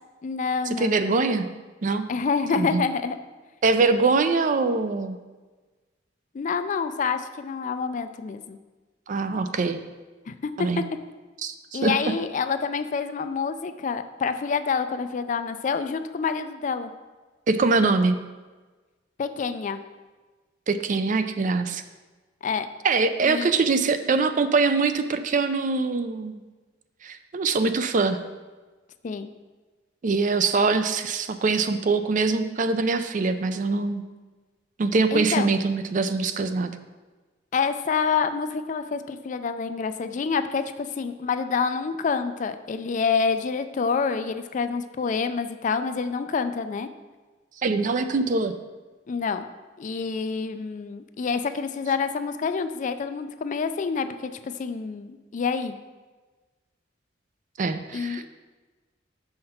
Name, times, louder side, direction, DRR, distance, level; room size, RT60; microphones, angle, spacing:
voice 1, 0.2-1.2 2.1-3.2 6.3-8.6 10.3-10.8 11.7-16.9 19.2-19.8 22.4-22.7 23.2-23.5 29.0-29.3 35.1-35.5 37.5-46.9 49.1-49.4 49.8-55.8 57.9-58.3, left 5 dB, 40° left, 10 dB, 0.3 m, -27 dB
voice 2, 0.8-1.5 1.8-2.1 2.6-2.8 3.6-5.2 9.1-9.8 10.6-10.8 11.4-12.0 17.5-18.2 20.7-21.8 22.8-26.3 27.0-28.2 30.0-34.0 34.8-36.7 47.6-48.5 57.6-58.2, right 4 dB, 45° right, 9 dB, 0.4 m, -23 dB
6.5 x 5.7 x 4.3 m, 1.3 s
head